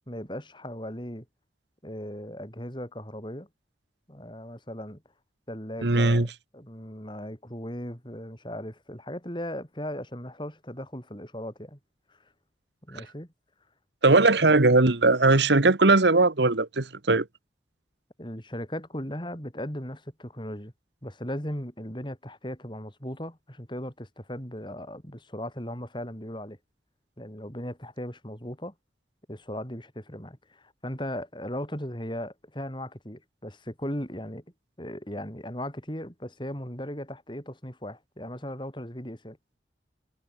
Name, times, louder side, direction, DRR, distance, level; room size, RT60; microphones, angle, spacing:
voice 1, 0.1-1.3 1.8-3.5 4.1-5.0 5.5-6.3 6.5-11.8 12.9-13.3 14.4-14.6 18.2-20.7 21.0-26.6 27.2-28.7 29.3-34.4 34.8-39.6, equal, 25° left, 7.4 m, -37 dB
voice 2, 5.8-6.3 14.0-17.3, right 3 dB, 75° right, 1.4 m, -19 dB
head